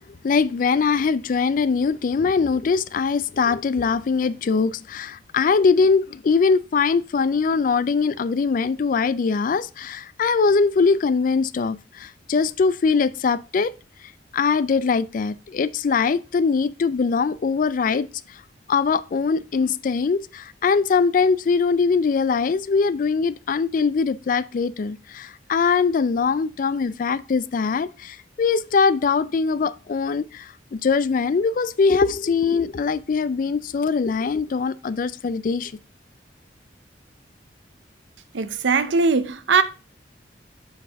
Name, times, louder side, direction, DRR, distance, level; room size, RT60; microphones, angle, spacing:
voice 1, 0.2-13.7 14.3-18.4 18.7-35.7, left 5 dB, 45° left, 0.3 m, -22 dB
voice 2, 38.3-39.6, right 4 dB, 80° right, 0.6 m, -20 dB
7.2 x 6.2 x 3.4 m
head